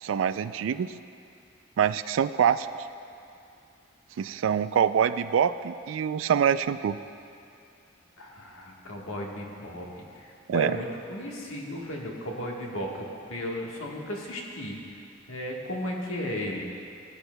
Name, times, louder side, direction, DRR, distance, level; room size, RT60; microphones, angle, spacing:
voice 1, 0.0-0.9 1.8-2.7 4.2-7.0 10.5-10.7, right 8 dB, 70° right, 13 dB, 0.3 m, -25 dB
voice 2, 8.2-15.0 15.3-16.6, equal, 90° left, -1 dB, 1.4 m, -35 dB
17.0 x 9.8 x 2.2 m, 2.6 s
head